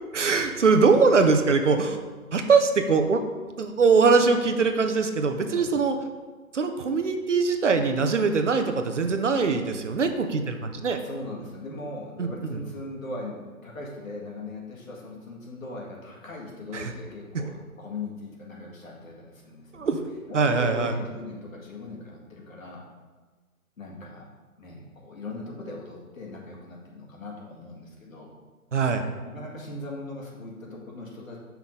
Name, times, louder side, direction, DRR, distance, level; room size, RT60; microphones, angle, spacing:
voice 1, 0.1-2.0 2.3-3.2 3.6-6.0 6.5-11.0 12.2-12.6 16.7-16.9 19.7-20.0 20.3-20.9 28.7-29.0, right 4 dB, 55° right, 6 dB, 0.7 m, -22 dB
voice 2, 11.0-19.9 20.3-22.8 23.8-24.2 24.6-28.3 29.2-31.4, left 2 dB, 65° left, -3 dB, 1.9 m, -39 dB
5.8 x 5.8 x 3.7 m, 1.3 s
hypercardioid pair, 165°, 44 cm